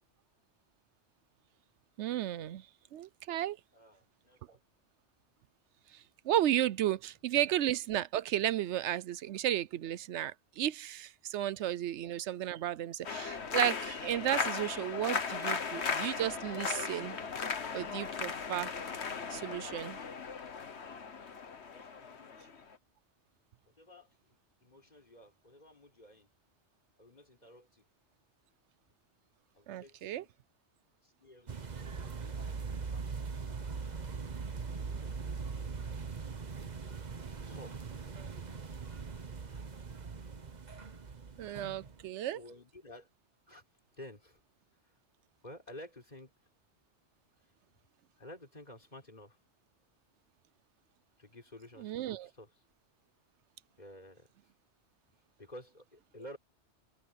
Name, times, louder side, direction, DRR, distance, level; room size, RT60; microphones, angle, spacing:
voice 1, 2.0-2.6 2.9-3.6 6.2-17.2 17.7-18.7 19.3-20.0 29.7-30.2 41.4-42.4 51.8-52.3, right 12 dB, 80° right, 0.9 m, -33 dB
voice 2, 3.7-4.6 11.7-11.8 21.7-22.4 23.7-26.3 27.0-27.8 29.5-30.3 31.0-33.1 34.5-35.4 36.8-36.9 37.2-37.9 42.3-43.1 43.5-43.6 44.0-44.4 44.8-44.9 45.4-46.3 48.2-49.4 51.2-52.6 53.8-54.3 55.4-56.4, left 1 dB, 40° left, 4.0 m, -53 dB
sound 1, 13.0-22.7, left 5 dB, 75° left, 1.6 m, -37 dB
sound 2, 31.5-42.0, right 5 dB, 40° right, 1.2 m, -41 dB
omnidirectional pair, 1.2 m